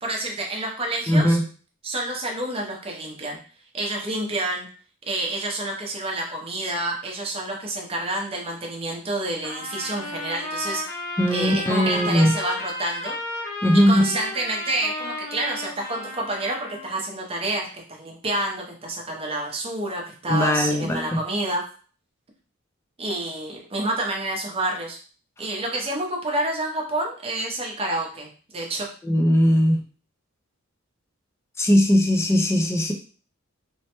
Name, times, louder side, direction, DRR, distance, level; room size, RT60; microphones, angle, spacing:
voice 1, 0.0-1.4 1.8-3.4 3.7-4.7 5.1-10.8 11.3-13.2 13.9-21.6 23.0-25.0 25.4-28.9, right 2 dB, 25° right, 0 dB, 0.7 m, -28 dB
voice 2, 1.1-1.4 11.2-12.3 13.6-14.1 20.3-21.1 29.0-29.8 31.6-32.9, equal, 15° left, 4 dB, 0.4 m, -19 dB
Trumpet, 9.4-16.9, left 1 dB, 55° left, 0.9 m, -33 dB
3.1 x 2.1 x 2.9 m, 0.40 s
head